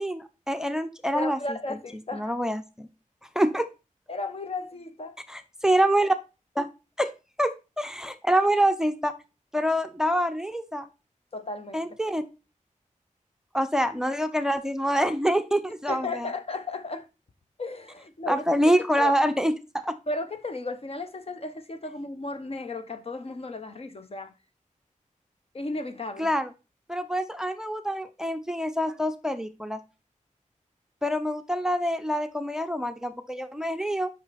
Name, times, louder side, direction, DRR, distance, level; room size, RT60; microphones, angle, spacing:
voice 1, 0.0-1.6 2.1-2.9 3.3-3.7 5.3-6.2 6.6-6.7 7.0-7.1 7.4-9.1 9.5-10.9 11.7-12.2 13.5-16.3 18.3-20.0 26.2-26.5 26.9-29.8 31.0-34.1, equal, 5° right, 0.6 m, -26 dB
voice 2, 1.1-2.3 4.1-5.2 11.3-11.9 15.9-17.1 17.6-18.4 19.0-19.2 20.1-24.3 25.5-26.3, left 2 dB, 45° left, 0.9 m, -34 dB
8.2 x 5.6 x 4.1 m
wide cardioid pair, 90°, 14 cm